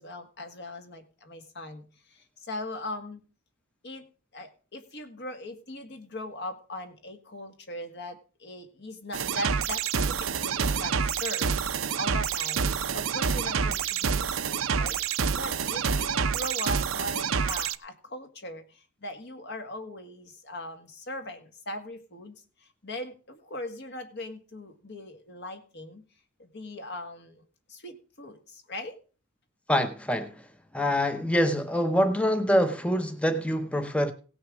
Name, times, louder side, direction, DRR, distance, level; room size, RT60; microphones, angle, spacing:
voice 1, 0.0-3.2 3.8-4.0 4.3-11.5 12.0-12.7 12.9-22.4 22.6-26.0 26.4-27.4 27.7-29.0, left 1 dB, 60° left, 2.0 m, -39 dB
sound 1, 9.1-17.7, right 6 dB, 90° right, 0.8 m, -28 dB
voice 2, 29.7-30.3 30.7-34.1, equal, 5° left, 0.8 m, -25 dB
17.0 x 6.3 x 6.2 m
head